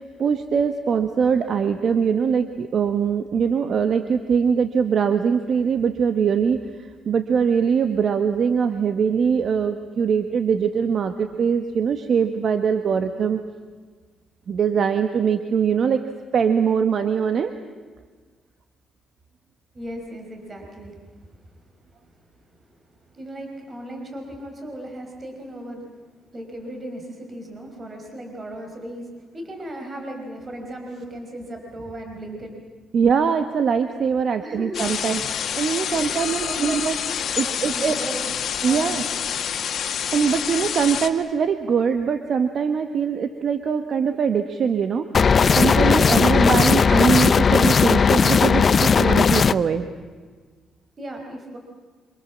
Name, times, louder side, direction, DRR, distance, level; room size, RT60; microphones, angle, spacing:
voice 1, 0.0-13.4 14.5-16.0 16.3-17.5 32.9-35.2 35.5-36.9 37.4-38.0 38.6-39.0 40.1-45.1 45.6-49.9, right 6 dB, 55° right, 8 dB, 1.5 m, -22 dB
voice 2, 19.7-25.9 26.3-32.5 34.4-34.8 35.1-35.3 36.0-36.8 37.4-39.0 51.0-51.6, right 1 dB, 35° right, 3 dB, 5.4 m, -37 dB
sound 1, 34.7-41.1, left 8 dB, 65° left, 2.0 m, -27 dB
sound 2, 45.1-49.5, left 6 dB, 45° left, 0.7 m, -17 dB
27.0 x 26.5 x 7.4 m, 1.5 s
cardioid pair, 90°, 0 cm